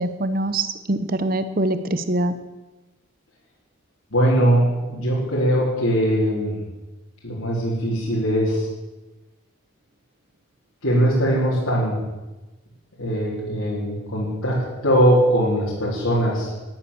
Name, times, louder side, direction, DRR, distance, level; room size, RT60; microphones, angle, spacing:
voice 1, 0.0-2.3, right 1 dB, 40° right, 11 dB, 0.9 m, -24 dB
voice 2, 4.1-6.6 7.2-8.7 10.8-12.0 13.0-16.5, equal, 90° left, -6 dB, 3.9 m, -21 dB
13.5 x 9.8 x 7.1 m, 1.1 s
head